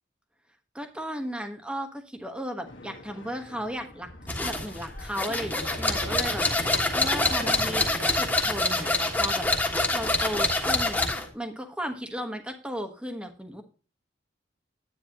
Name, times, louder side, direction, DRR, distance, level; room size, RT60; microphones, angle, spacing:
voice 1, 0.7-4.1 4.4-6.6 6.9-9.5 9.9-11.1 11.3-13.6, equal, 5° right, 5 dB, 1.2 m, -35 dB
sound 1, 2.7-7.7, left 2 dB, 80° left, 1.6 m, -42 dB
sound 2, 4.3-11.3, left 2 dB, 10° left, 1.5 m, -26 dB
10.0 x 9.2 x 2.9 m, 0.36 s
head